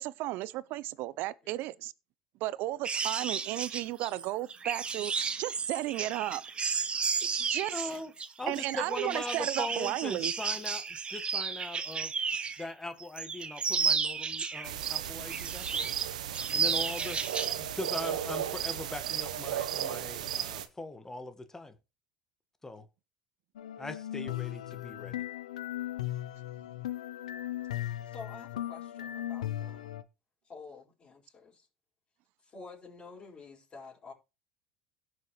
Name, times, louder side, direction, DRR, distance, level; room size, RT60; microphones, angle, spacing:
voice 1, 0.0-1.9 2.4-6.4 7.2-7.9 8.5-10.3, right 16 dB, 60° right, 0.6 m, -34 dB
sound 1, 2.8-12.7 13.0-14.9 15.3-16.0 16.3-17.6 17.9-18.1, right 5 dB, 30° right, 1.2 m, -33 dB
voice 2, 7.7-8.1 8.4-10.8 11.1-12.1 12.6-15.9 16.5-17.2 17.6-21.7 22.6-22.8 23.8-25.2, left 2 dB, 15° left, 1.5 m, -40 dB
sound 2, 14.6-20.7, right 10 dB, 85° right, 1.0 m, -35 dB
sound 3, 23.6-30.0, left 13 dB, 90° left, 0.7 m, -37 dB
voice 3, 27.7-30.0 30.4-31.7 32.4-34.1, left 4 dB, 30° left, 5.3 m, -49 dB
17.0 x 6.5 x 3.1 m
hypercardioid pair, 80°, 4 cm